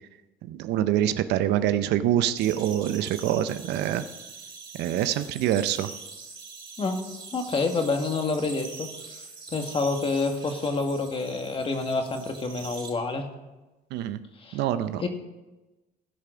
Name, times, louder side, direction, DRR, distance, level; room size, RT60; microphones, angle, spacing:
voice 1, 0.4-4.0 4.8-5.9 13.9-14.2 14.5-15.0, right 11 dB, 85° right, 12 dB, 0.6 m, -25 dB
sound 1, 2.4-12.9, right 4 dB, 30° right, 3.3 m, -43 dB
voice 2, 7.3-9.2 9.5-13.3 14.4-14.6 14.9-15.1, left 3 dB, 30° left, 5 dB, 1.6 m, -28 dB
17.0 x 5.7 x 5.0 m, 1.1 s
cardioid pair, 110°, 17 cm